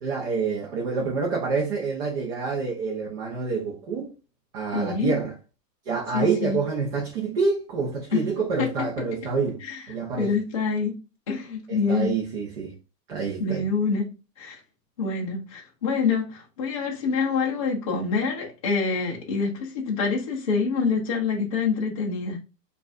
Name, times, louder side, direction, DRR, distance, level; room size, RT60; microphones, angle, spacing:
voice 1, 0.0-4.1 4.5-5.3 5.9-9.6 9.9-10.3 11.7-12.7 13.1-13.7, right 4 dB, 35° right, 0.7 m, -27 dB
voice 2, 4.7-5.1 6.1-6.6 8.1-8.2 8.6-8.7 9.6-9.8 10.2-10.9 11.3-12.1 13.4-14.1 14.4-14.6 15.0-22.4, left 5 dB, 25° left, 0.5 m, -26 dB
4.6 x 2.5 x 2.4 m
supercardioid pair, 170°, 49 cm